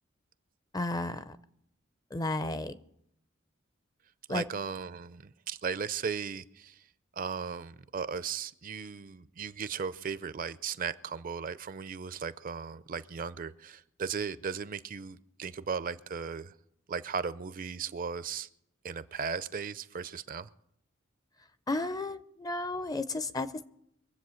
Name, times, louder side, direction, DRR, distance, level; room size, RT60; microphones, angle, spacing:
voice 1, 0.7-1.4 2.1-2.8 4.3-4.4 21.7-23.7, left 2 dB, 20° left, 0.5 m, -33 dB
voice 2, 4.3-6.8 7.1-16.6 16.9-18.5 18.8-20.5, right 6 dB, 40° right, 0.5 m, -36 dB
23.0 x 8.0 x 6.3 m
head